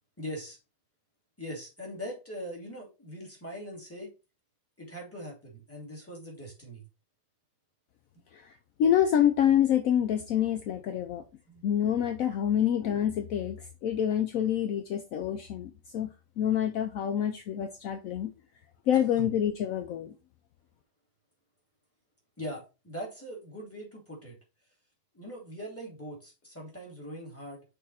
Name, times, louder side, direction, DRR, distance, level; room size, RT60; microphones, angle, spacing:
voice 1, 0.2-0.6 1.4-4.1 4.8-6.8 11.5-11.6 19.2-19.3 22.4-24.4 25.1-27.6, equal, 5° left, 2.5 m, -41 dB
voice 2, 8.8-11.2 11.6-16.1 16.4-18.3 18.9-20.1, left 10 dB, 70° left, 0.8 m, -27 dB
6.2 x 4.0 x 4.2 m
omnidirectional pair, 2.0 m